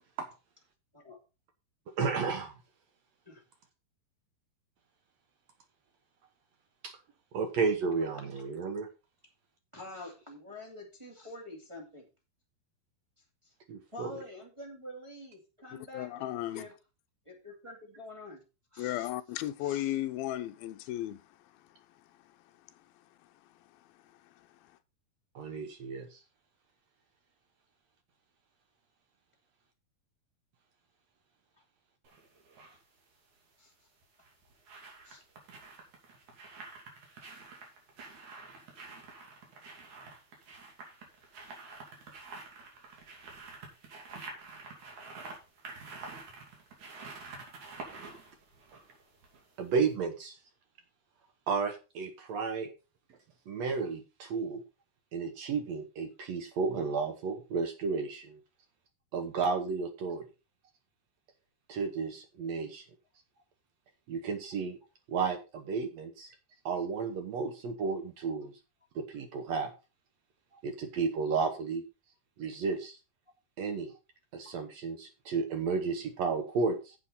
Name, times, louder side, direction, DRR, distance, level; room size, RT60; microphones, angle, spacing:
voice 1, 2.0-2.5 6.8-7.0 7.3-8.9 13.7-14.1 25.3-26.2 49.6-50.4 51.5-52.7 53.5-54.6 55.1-58.4 59.1-60.2 61.7-62.8 64.1-64.8 65.1-66.3 66.6-68.5 68.9-69.7 70.6-71.8 72.4-73.0 73.6-73.9 74.3-76.9, right 5 dB, 70° right, 1.7 m, -32 dB
voice 2, 9.7-12.1 13.4-13.5 13.9-16.7 17.2-18.4 18.7-19.1 19.6-20.0 33.6-33.7 35.0-35.2 70.5-70.6 74.4-74.5, left 1 dB, 15° right, 1.2 m, -47 dB
voice 3, 15.9-16.7 18.8-21.2, left 14 dB, 80° left, 2.5 m, -34 dB
sound 1, 32.0-32.8 34.0-49.6 49.9-50.0, right 3 dB, 55° right, 3.8 m, -48 dB
10.0 x 7.7 x 4.0 m
omnidirectional pair, 4.4 m